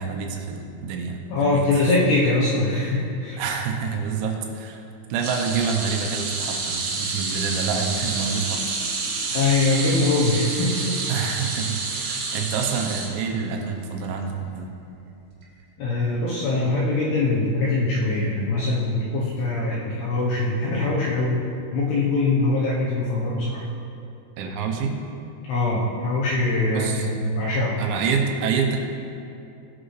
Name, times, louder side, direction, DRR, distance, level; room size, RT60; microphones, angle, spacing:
voice 1, 0.0-1.6 3.4-4.8 5.1-8.8 9.3-9.5 11.1-14.7 20.7-20.9 24.4-25.0 26.7-27.1 27.8-28.8, right 5 dB, 85° right, 2 dB, 3.6 m, -27 dB
voice 2, 1.3-3.4 9.3-11.0 15.8-21.4 21.7-23.6 25.5-27.7, left 2 dB, 80° left, -6 dB, 2.4 m, -22 dB
sound 1, 5.2-13.7 14.0-14.2 15.4-15.5, right 4 dB, 65° right, 2.7 m, -29 dB
18.5 x 6.3 x 3.2 m, 2.7 s
omnidirectional pair, 5.9 m